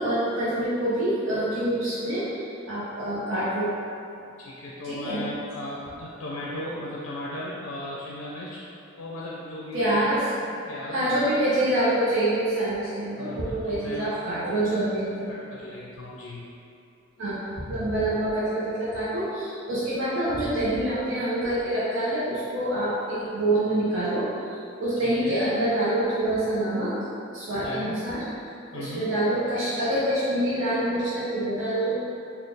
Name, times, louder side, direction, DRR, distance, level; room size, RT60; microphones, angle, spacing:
voice 1, 0.0-3.7 4.9-5.2 9.7-10.2 10.9-15.3 17.2-26.9 27.3-28.2 28.7-32.0, right 1 dB, 70° right, -10 dB, 0.7 m, -26 dB
voice 2, 4.4-8.6 9.0-10.0 10.4-11.2 13.2-14.7 15.3-16.5 25.0-25.4 27.5-28.0 28.7-29.1, left 1 dB, 75° left, -5 dB, 0.4 m, -37 dB
4.1 x 2.3 x 3.3 m, 2.8 s
head